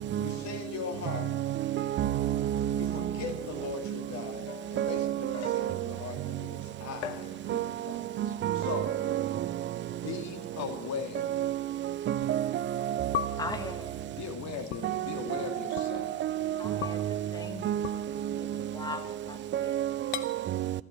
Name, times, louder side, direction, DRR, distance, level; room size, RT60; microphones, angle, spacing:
voice 1, 0.2-1.3 2.7-8.2 8.5-8.9 10.0-11.3 14.2-16.1, left 6 dB, 50° left, 2.4 m, -39 dB
voice 2, 1.2-3.1 4.8-5.7 7.5-7.7 8.2-9.5 11.2-13.2 14.8-15.1 15.3-15.4 15.7-17.2 17.6-18.4 19.5-20.7, right 12 dB, 35° right, 0.5 m, -30 dB
sound 1, 4.5-6.0 7.0-7.9 8.2-8.6 9.6-9.7 10.5-10.6 12.2-12.3 13.1-13.6 14.7-14.9 15.8-15.9 16.8-17.1 17.8-18.0 18.9-19.4 20.1-20.3, left 10 dB, 70° left, 0.8 m, -39 dB
voice 3, 13.4-13.9 16.6-17.7 17.9-19.7, left 3 dB, 10° left, 1.2 m, -40 dB
13.5 x 12.0 x 8.6 m
figure-of-eight pair, 55°, 34 cm